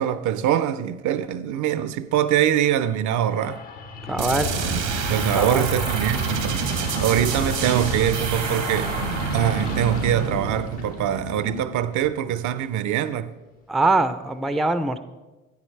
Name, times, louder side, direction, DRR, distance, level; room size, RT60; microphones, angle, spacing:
voice 1, 0.0-3.6 4.6-6.6 7.0-9.0 9.3-13.3, right 10 dB, 55° right, 0.5 m, -23 dB
sound 1, 3.2-12.6, left 5 dB, 70° left, 1.3 m, -33 dB
voice 2, 4.1-4.5 5.3-5.7 13.7-15.0, right 2 dB, ahead, 0.4 m, -22 dB
sound 2, 4.2-11.8, right 7 dB, 75° right, 1.0 m, -28 dB
9.3 x 8.9 x 3.2 m
hypercardioid pair, 50°, 36 cm